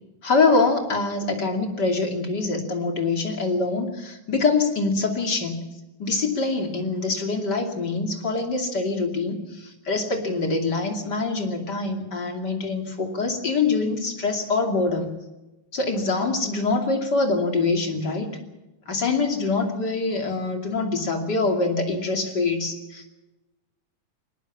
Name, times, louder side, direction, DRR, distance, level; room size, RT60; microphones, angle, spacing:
voice 1, 0.2-5.6 6.0-15.1 15.7-18.3 18.9-23.1, left 3 dB, 35° left, 4 dB, 3.0 m, -24 dB
21.0 x 19.5 x 7.3 m, 1.0 s
omnidirectional pair, 3.4 m